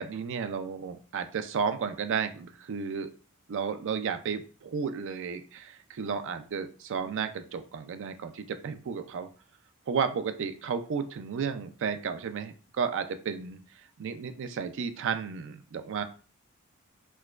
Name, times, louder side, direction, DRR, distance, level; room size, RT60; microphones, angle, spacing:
voice 1, 0.0-3.1 3.5-9.3 9.9-16.0, right 6 dB, 60° right, 9 dB, 0.4 m, -33 dB
4.4 x 2.2 x 2.3 m, 0.40 s
head